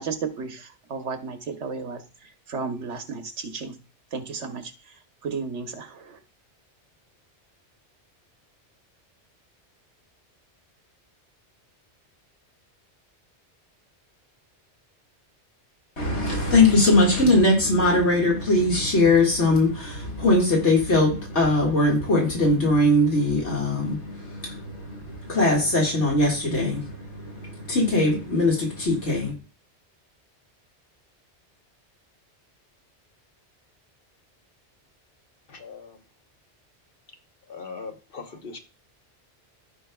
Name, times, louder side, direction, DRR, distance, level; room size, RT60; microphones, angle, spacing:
voice 1, 0.0-3.8 4.1-6.2, right 5 dB, 85° right, 1.4 m, -34 dB
voice 2, 16.0-29.3, left 2 dB, 75° left, 2.3 m, -21 dB
voice 3, 35.5-36.0 37.5-38.6, left 4 dB, 55° left, 1.3 m, -39 dB
15.0 x 5.4 x 2.3 m
omnidirectional pair, 1.2 m